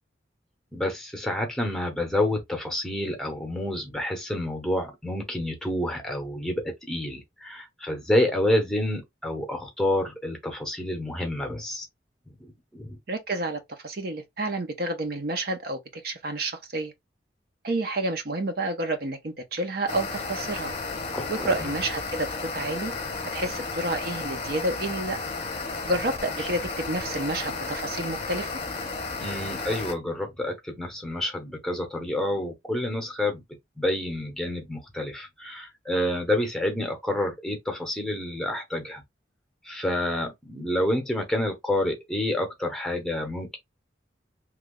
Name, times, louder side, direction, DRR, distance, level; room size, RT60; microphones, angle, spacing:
voice 1, 0.7-11.9 12.4-13.0 21.1-21.7 29.2-33.4 33.8-39.0 39.6-43.6, left 1 dB, 5° left, 0.8 m, -28 dB
voice 2, 13.1-16.9 17.6-20.7 21.3-22.9 23.3-25.2 25.8-28.5, right 2 dB, 55° right, 0.6 m, -29 dB
sound 1, 19.9-29.9, left 3 dB, 35° left, 0.7 m, -33 dB
3.0 x 2.2 x 3.6 m
head